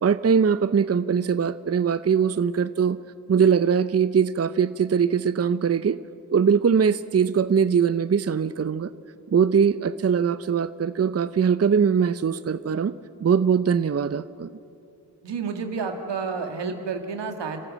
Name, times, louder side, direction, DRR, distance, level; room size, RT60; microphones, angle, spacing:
voice 1, 0.0-3.0 3.3-6.0 6.3-8.9 9.3-12.9 13.2-14.5, right 6 dB, 35° right, 14 dB, 0.7 m, -21 dB
voice 2, 15.2-17.7, right 5 dB, 85° right, 5 dB, 2.0 m, -30 dB
30.0 x 13.0 x 7.7 m, 2.9 s
cardioid pair, 40°, 41 cm